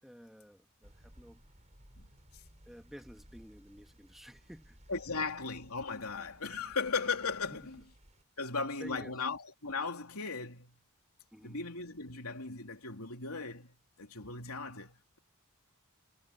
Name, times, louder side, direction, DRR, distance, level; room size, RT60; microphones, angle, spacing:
voice 1, 0.0-1.4 2.7-4.8 7.4-7.8 8.5-9.2 11.3-11.6, equal, ahead, 2.1 m, -52 dB
sound 1, 0.8-8.2, equal, 30° right, 6.4 m, -59 dB
voice 2, 2.0-2.4 4.9-7.8 8.4-10.8 11.4-15.2, left 4 dB, 70° left, 3.5 m, -37 dB
head